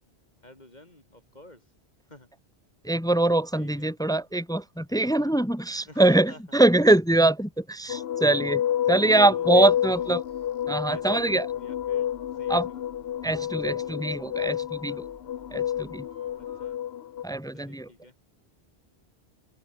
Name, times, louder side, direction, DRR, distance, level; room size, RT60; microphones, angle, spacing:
voice 1, 0.4-1.6 2.1-2.3 3.5-3.9 5.9-6.4 8.9-10.1 10.8-12.8 13.6-14.0 14.9-15.0 16.4-16.8 17.5-18.1, left 1 dB, 40° left, 3.5 m, -50 dB
voice 2, 2.8-8.6 8.9-10.2 10.7-11.5 12.5-12.7 13.2-15.0 15.5-16.0 17.2-17.9, right 2 dB, 5° left, 0.7 m, -23 dB
sound 1, 7.9-17.2, left 10 dB, 70° left, 0.9 m, -29 dB
sound 2, 9.4-16.8, right 1 dB, 45° right, 6.7 m, -56 dB
open air
omnidirectional pair, 1.1 m